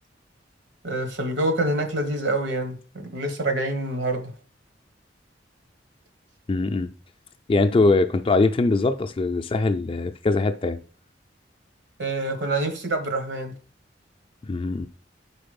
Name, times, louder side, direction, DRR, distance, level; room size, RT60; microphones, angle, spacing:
voice 1, 0.8-4.3 12.0-13.5, right 2 dB, 75° right, 1.2 m, -26 dB
voice 2, 6.5-6.9 7.5-10.8 14.5-14.9, left 3 dB, 30° left, 0.4 m, -22 dB
4.8 x 3.8 x 5.2 m
head